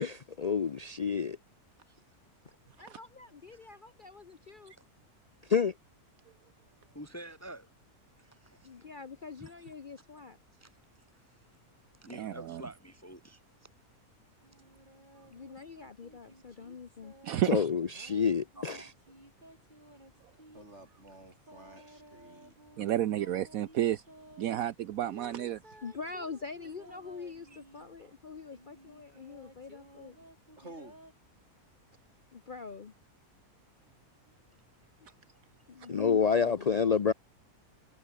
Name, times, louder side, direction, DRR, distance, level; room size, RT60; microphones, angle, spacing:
voice 1, 0.0-1.4 5.5-5.7 17.5-18.9 35.9-37.1, left 6 dB, 60° left, 0.4 m, -28 dB
voice 2, 2.8-4.7 8.6-10.4 15.3-17.1 25.8-30.2 32.3-32.9 35.7-36.8, left 4 dB, 40° left, 0.9 m, -45 dB
voice 3, 6.9-7.7 8.2-8.9 9.4-9.7 10.6-10.8 11.1-11.4 12.0-13.4 18.6-18.9 27.5-27.6, right 1 dB, 10° left, 1.5 m, -48 dB
voice 4, 12.1-12.6 17.2-17.7 22.8-24.0 24.4-25.6, right 12 dB, 70° right, 1.1 m, -31 dB
sound 1, 14.4-17.4 17.9-20.6 21.4-24.5 25.0-27.9 28.5-31.1, right 1 dB, 30° right, 7.9 m, -56 dB
voice 5, 20.5-22.6 30.6-31.0, right 2 dB, 45° right, 6.4 m, -51 dB
omnidirectional pair, 1.6 m